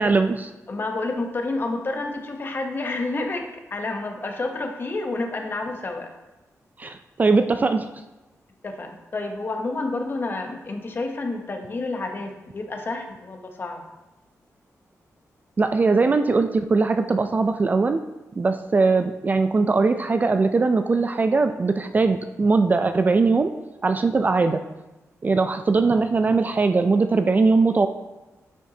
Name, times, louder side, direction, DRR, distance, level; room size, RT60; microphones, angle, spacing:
voice 1, 0.0-0.5 6.8-7.9 15.6-18.0 18.4-23.5 23.8-24.6 25.2-27.9, right 3 dB, 30° right, 8 dB, 0.3 m, -20 dB
voice 2, 0.7-6.1 8.6-13.9, left 2 dB, 40° left, 4 dB, 0.9 m, -29 dB
8.7 x 5.8 x 2.8 m, 1.0 s
wide cardioid pair, 140°, 6 cm